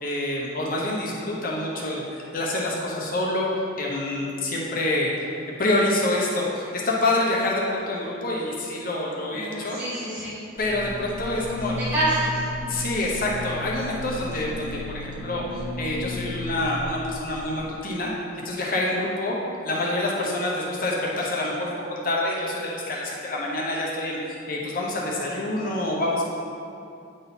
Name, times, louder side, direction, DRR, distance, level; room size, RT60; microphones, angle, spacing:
voice 1, 0.0-3.5 3.8-5.1 5.6-9.8 10.6-11.8 12.7-18.1 18.4-19.4 19.6-21.7 22.0-26.2, left 1 dB, 45° left, -3 dB, 0.9 m, -27 dB
voice 2, 9.3-10.3 11.6-12.4, right 1 dB, 10° right, -14 dB, 1.5 m, -27 dB
sound 1, 10.6-17.7, left 2 dB, 60° left, 1.6 m, -34 dB
8.9 x 3.8 x 4.0 m, 2.6 s
head